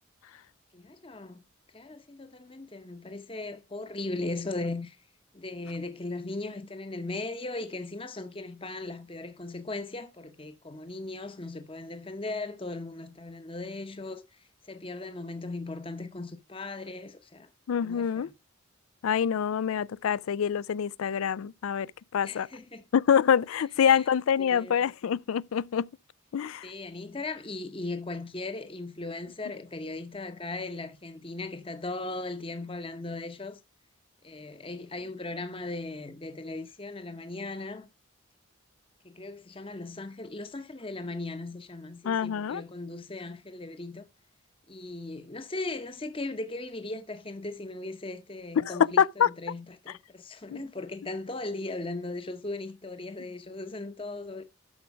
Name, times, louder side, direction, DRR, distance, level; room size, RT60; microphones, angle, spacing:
voice 1, 0.7-1.4 1.7-5.0 5.3-17.5 17.8-18.3 22.2-22.9 23.8-24.1 24.4-24.8 26.6-33.6 34.2-37.9 39.0-44.1 44.7-54.4, left 2 dB, 25° left, 0.8 m, -38 dB
voice 2, 17.7-18.3 19.0-21.9 22.1-22.5 22.9-25.9 26.3-26.7 42.0-42.6 48.6-49.3 50.5-50.6, left 8 dB, 85° left, 0.4 m, -25 dB
12.5 x 5.1 x 4.6 m
head